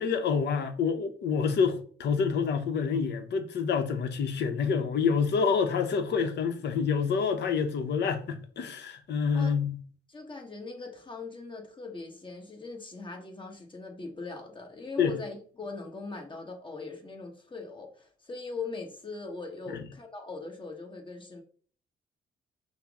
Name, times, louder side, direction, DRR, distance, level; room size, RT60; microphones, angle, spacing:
voice 1, 0.0-9.8 15.0-15.2, left 6 dB, 60° left, 0.7 m, -27 dB
voice 2, 10.1-21.4, left 3 dB, 25° left, 1.1 m, -40 dB
5.6 x 2.0 x 3.5 m
cardioid pair, 90°, 20 cm